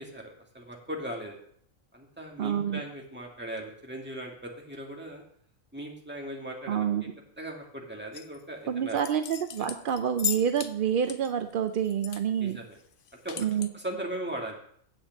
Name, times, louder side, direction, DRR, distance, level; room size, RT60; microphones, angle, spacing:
voice 1, 0.0-1.4 1.9-5.2 5.7-7.1 7.4-9.0 9.6-9.7 12.4-12.8 13.2-14.6, right 1 dB, 10° right, -1 dB, 1.8 m, -38 dB
voice 2, 2.4-2.8 6.7-7.1 8.7-12.6 13.4-13.7, right 8 dB, 65° right, 8 dB, 0.5 m, -28 dB
sound 1, 8.1-8.4 8.9-10.7 11.0-12.2 12.5-12.6 12.9-13.7, left 9 dB, 55° left, 0.6 m, -36 dB
8.1 x 6.2 x 7.4 m, 0.63 s
omnidirectional pair, 1.4 m